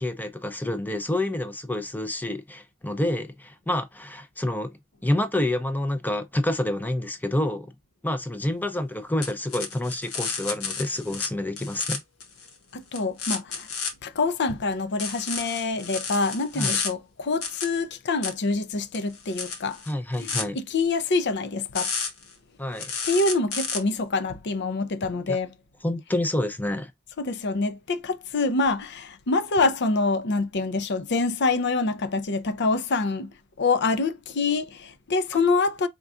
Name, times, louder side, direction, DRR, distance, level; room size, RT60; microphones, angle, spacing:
voice 1, 0.0-4.7 5.0-7.7 8.0-12.0 16.5-16.8 19.9-20.6 22.6-22.9 25.3-25.4 25.8-26.9, left 1 dB, 10° left, 0.6 m, -28 dB
sound 1, 9.2-11.3 11.6-12.5 12.9-13.9 15.0-16.9 17.4-17.6 18.2-18.3 18.9-20.4 21.7-22.3 22.8-23.8, left 5 dB, 85° left, 1.5 m, -31 dB
voice 2, 12.7-13.7 14.0-19.8 20.2-21.9 23.0-25.6 27.2-33.3 33.6-35.9, left 3 dB, 55° left, 0.6 m, -26 dB
4.7 x 3.7 x 2.4 m
head